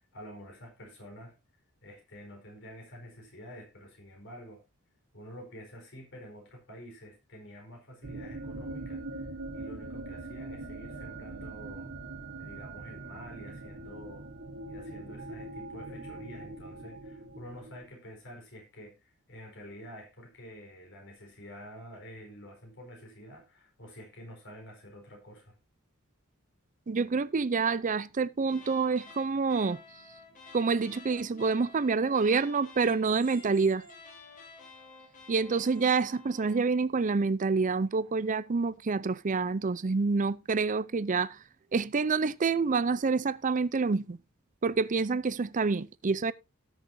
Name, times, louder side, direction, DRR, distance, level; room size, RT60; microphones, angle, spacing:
voice 1, 0.0-1.3 1.8-4.6 5.1-9.3 9.5-11.9 12.4-14.3 14.7-25.5, equal, 60° left, 4.5 m, -48 dB
sound 1, 8.0-17.8, right 2 dB, 55° right, 1.2 m, -42 dB
voice 2, 26.9-29.8 30.5-33.8 35.3-41.4 41.7-44.2 44.6-46.3, right 4 dB, 35° right, 0.5 m, -27 dB
sound 2, 28.4-36.7, left 4 dB, 35° left, 2.6 m, -52 dB
18.0 x 6.4 x 2.7 m
head